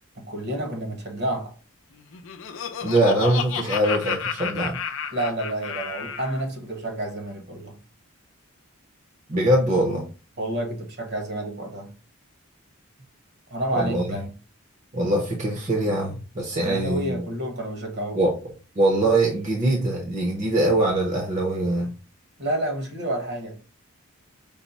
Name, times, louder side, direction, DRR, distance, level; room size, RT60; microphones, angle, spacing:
voice 1, 0.1-1.5 5.1-7.8 10.4-11.9 13.5-14.3 16.5-18.2 22.4-23.6, right 1 dB, 50° right, 1.1 m, -29 dB
Laughter, 2.0-6.4, left 7 dB, 65° left, 0.5 m, -32 dB
voice 2, 2.8-4.8 9.3-10.1 13.7-14.1 14.9-17.2 18.1-18.3 18.8-21.9, right 1 dB, 35° right, 0.8 m, -22 dB
5.4 x 2.1 x 4.0 m
head